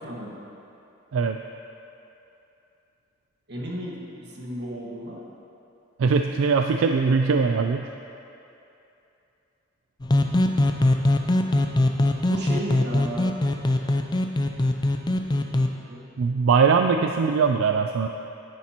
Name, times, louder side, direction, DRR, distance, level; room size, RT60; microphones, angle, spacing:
voice 1, 0.0-0.4 3.5-4.0 4.3-5.2 12.2-13.3 15.8-16.1, right 1 dB, 60° right, -3 dB, 1.6 m, -33 dB
voice 2, 1.1-1.4 6.0-7.9 16.2-18.1, right 5 dB, 85° right, 5 dB, 0.3 m, -21 dB
sound 1, 10.0-15.7, left 1 dB, 20° left, 0.4 m, -22 dB
10.5 x 10.0 x 2.9 m, 2.8 s
head